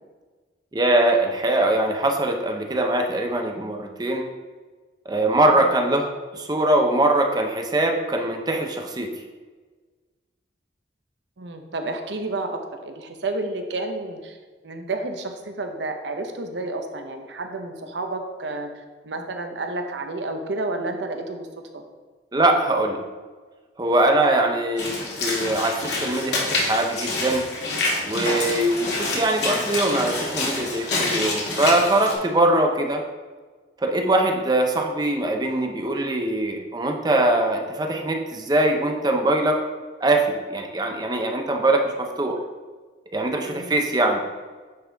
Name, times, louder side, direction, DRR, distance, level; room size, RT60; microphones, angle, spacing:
voice 1, 0.7-4.2 5.1-9.1 22.3-23.0 23.8-24.9 25.2-27.4 28.0-33.0 33.8-39.6 40.0-42.4 43.1-44.2, right 1 dB, 20° right, 3 dB, 0.6 m, -22 dB
voice 2, 11.4-14.4 14.6-18.7 19.0-21.5 21.7-21.8 28.5-28.7 43.5-43.8, right 2 dB, 80° right, 5 dB, 0.8 m, -30 dB
Walk footsteps / Splash splatter, 24.8-32.1, left 2 dB, 75° left, 1.8 m, -27 dB
9.6 x 4.1 x 3.5 m, 1.4 s
head